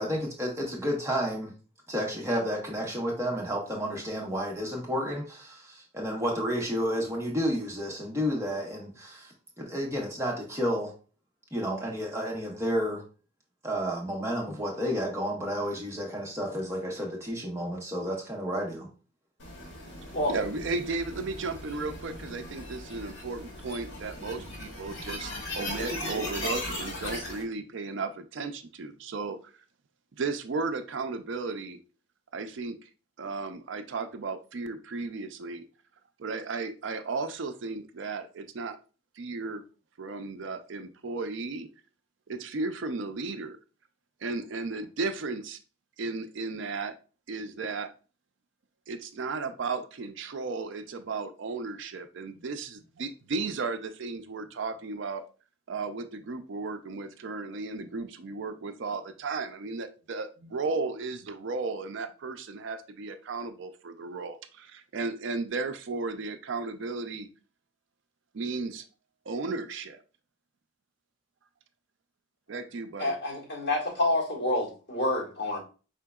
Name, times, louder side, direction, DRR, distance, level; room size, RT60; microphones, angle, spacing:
voice 1, 0.0-1.5 1.9-10.9 11.5-13.0 13.6-18.9, equal, 15° right, 1.0 m, -31 dB
sound 1, 19.4-27.4, left 1 dB, 75° left, 1.5 m, -38 dB
voice 2, 20.3-29.4 30.2-31.8 32.3-32.8 33.2-35.7 36.2-38.8 39.2-39.6 40.0-41.7 42.3-43.6 44.2-45.6 46.0-46.9 47.3-47.9 48.9-55.2 55.7-67.3 68.3-68.8 69.3-70.0 72.5-73.2, right 3 dB, 70° right, 0.5 m, -34 dB
voice 3, 73.0-75.6, left 1 dB, 60° left, 1.7 m, -28 dB
5.0 x 3.7 x 2.3 m
head